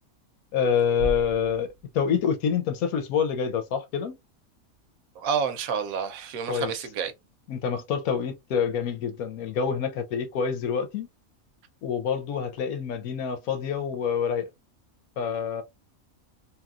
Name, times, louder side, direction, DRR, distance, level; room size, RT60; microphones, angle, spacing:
voice 1, 0.5-1.7 1.9-4.1 6.5-6.7 7.5-11.1 11.8-14.5 15.2-15.6, left 7 dB, 85° left, 1.2 m, -27 dB
sound 1, 1.0-3.1, right 1 dB, 55° left, 0.9 m, -38 dB
voice 2, 5.2-7.1, right 6 dB, 80° right, 1.1 m, -29 dB
3.0 x 2.7 x 2.3 m
omnidirectional pair, 1.5 m